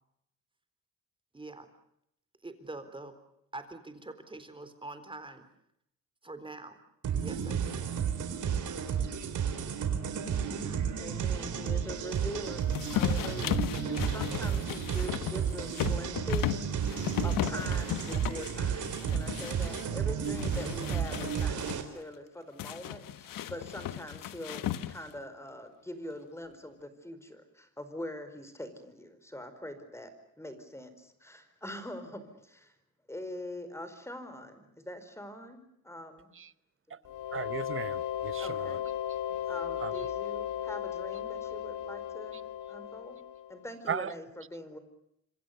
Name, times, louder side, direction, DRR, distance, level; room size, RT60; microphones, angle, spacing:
voice 1, 1.3-1.7 2.4-3.1 3.5-5.5 6.2-6.8 7.2-7.8, right 2 dB, 15° right, 3.9 m, -44 dB
sound 1, 7.0-21.8, right 7 dB, 65° right, 4.3 m, -32 dB
voice 2, 11.0-17.0 17.2-30.1 30.4-32.7 33.1-36.3 36.9-37.0 38.4-38.8 39.5-42.4 42.7-43.2 43.5-44.8, equal, 10° left, 4.8 m, -43 dB
sound 2, 12.7-19.9 20.2-21.8 22.6-25.2, left 12 dB, 85° left, 1.5 m, -35 dB
sound 3, 37.0-43.7, left 10 dB, 65° left, 1.4 m, -36 dB
voice 3, 37.3-38.8 39.8-39.9 43.9-44.1, right 7 dB, 40° right, 1.1 m, -36 dB
26.5 x 26.0 x 6.8 m
cardioid pair, 110°, 32 cm